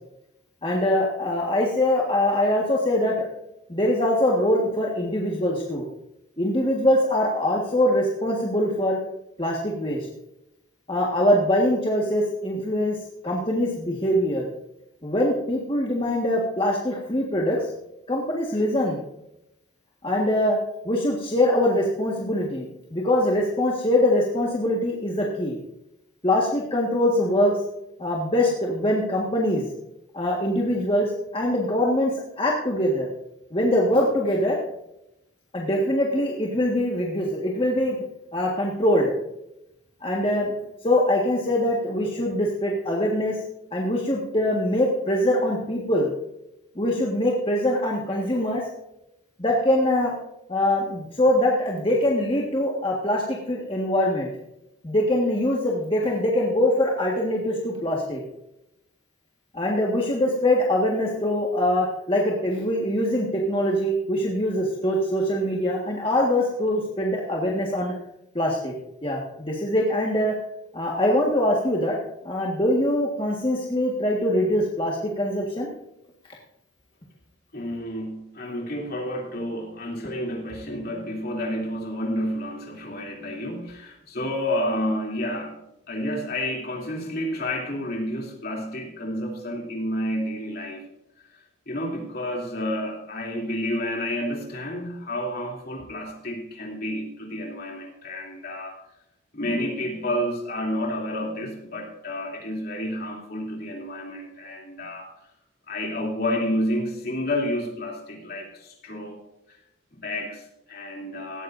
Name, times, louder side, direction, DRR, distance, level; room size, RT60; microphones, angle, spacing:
voice 1, 0.6-3.3 3.7-5.8 6.4-9.0 9.4-10.1 10.9-13.0 13.2-14.5 15.0-17.6 18.1-19.0 20.0-20.6 20.8-22.7 22.9-25.6 26.2-27.5 28.0-29.6 30.1-32.1 32.4-33.1 33.5-34.5 35.5-38.0 38.3-39.1 40.0-40.5 40.8-43.4 43.7-46.1 46.7-48.6 49.4-50.1 50.5-54.3 54.8-58.2 59.5-67.9 68.3-68.7 69.0-70.3 70.7-71.9 72.2-75.7, left 1 dB, 25° left, -3 dB, 1.6 m, -23 dB
voice 2, 77.5-85.6 85.9-90.9 91.3-91.4 91.7-98.8 99.3-105.3 105.7-109.2 109.5-109.6 109.9-111.4, left 1 dB, 50° left, 0 dB, 3.0 m, -30 dB
17.5 x 14.0 x 2.6 m, 0.86 s
head